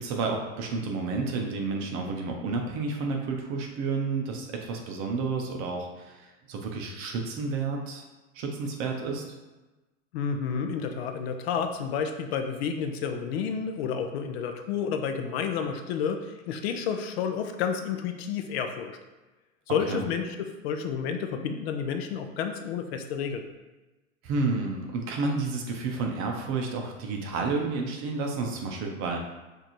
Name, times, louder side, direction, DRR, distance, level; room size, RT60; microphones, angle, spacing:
voice 1, 0.0-8.0 8.3-9.2 19.9-20.0 24.2-29.2, right 3 dB, 35° right, 2 dB, 0.7 m, -30 dB
voice 2, 10.1-19.0 19.7-23.4, left 6 dB, 55° left, 6 dB, 0.6 m, -30 dB
6.4 x 2.7 x 3.0 m, 1.1 s
supercardioid pair, 145°, 38 cm